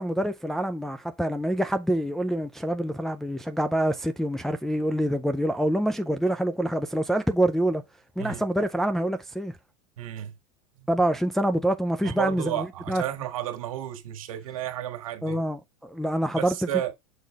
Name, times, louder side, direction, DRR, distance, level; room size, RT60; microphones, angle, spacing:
voice 1, 0.0-7.8 8.2-9.5 10.9-13.0 15.2-16.5, right 1 dB, ahead, 0.4 m, -26 dB
voice 2, 10.0-10.3 10.8-10.9 12.0-15.4 16.3-16.9, right 12 dB, 85° right, 1.6 m, -32 dB
6.2 x 5.2 x 3.5 m
supercardioid pair, 140°, 17 cm